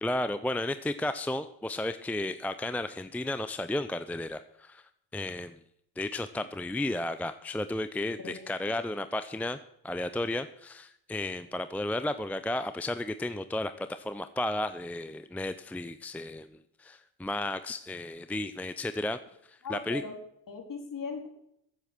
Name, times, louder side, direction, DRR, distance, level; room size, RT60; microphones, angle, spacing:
voice 1, 0.0-4.8 5.1-5.6 6.0-9.6 9.8-16.5 16.8-19.2 19.5-20.0, left 1 dB, 5° left, 11 dB, 0.6 m, -33 dB
voice 2, 8.2-8.8 19.6-20.1 20.5-21.3, left 5 dB, 45° left, 4 dB, 3.8 m, -39 dB
15.0 x 8.1 x 6.1 m, 0.75 s
hypercardioid pair, 60°, 47 cm